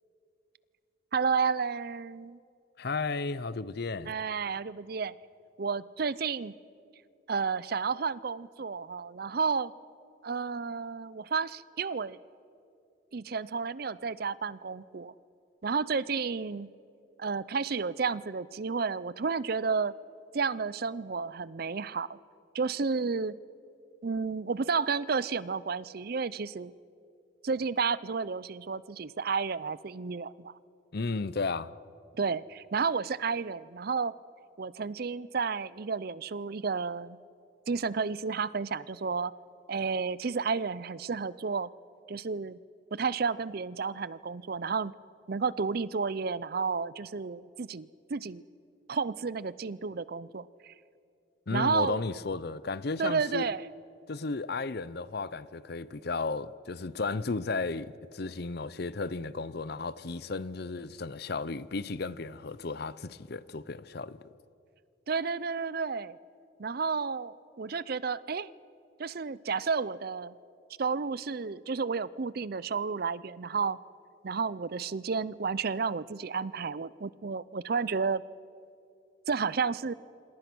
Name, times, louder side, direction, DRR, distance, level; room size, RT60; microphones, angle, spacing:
voice 1, 1.1-2.4 4.1-5.1 5.6-6.5 7.3-9.7 10.2-12.2 13.1-15.1 15.6-16.7 17.2-19.9 20.3-22.2 22.5-23.4 24.0-26.7 27.4-30.5 32.2-34.1 34.6-37.2 37.7-39.3 39.7-41.7 42.1-42.6 42.9-44.9 45.3-48.4 48.9-50.7 51.5-52.0 53.0-53.7 65.1-66.2 66.6-68.5 69.0-70.3 70.8-73.8 74.2-78.2 79.3-79.9, right 5 dB, 50° right, 0.5 m, -31 dB
voice 2, 2.8-4.1 30.9-31.7 51.5-53.4 54.1-64.2, left 3 dB, 50° left, 0.6 m, -34 dB
26.5 x 26.5 x 6.2 m
head